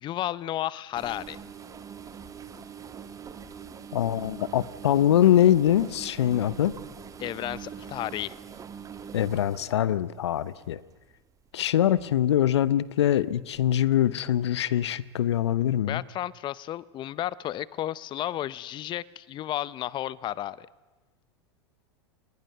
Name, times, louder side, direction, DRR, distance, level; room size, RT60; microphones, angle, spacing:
voice 1, 0.0-1.4 7.2-8.4 15.9-20.7, left 13 dB, 35° left, 20 dB, 0.7 m, -33 dB
sound 1, 0.9-11.1 11.8-12.1 12.5-12.7 13.5-14.0 14.3-14.4 15.3-15.4, right 7 dB, 25° right, 1.8 m, -43 dB
voice 2, 3.9-6.8 9.1-10.8 11.5-16.0, left 11 dB, 80° left, 19 dB, 0.9 m, -23 dB
29.5 x 20.5 x 6.8 m, 1.2 s
hypercardioid pair, 100°, 14 cm